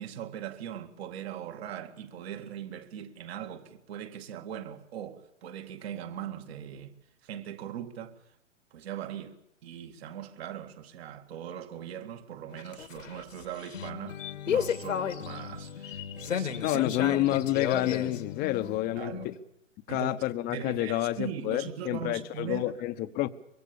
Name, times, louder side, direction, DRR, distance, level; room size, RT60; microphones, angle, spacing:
voice 1, 0.0-7.0 7.2-8.2 8.7-16.8 19.0-19.3 19.9-20.1 20.5-22.7, right 9 dB, 50° right, 2.2 m, -40 dB
sound 1, 12.5-19.3, left 8 dB, 75° left, 1.8 m, -34 dB
voice 2, 16.6-19.3 19.9-23.3, left 15 dB, 25° left, 0.9 m, -29 dB
24.0 x 22.5 x 7.0 m
hypercardioid pair, 125°, 38 cm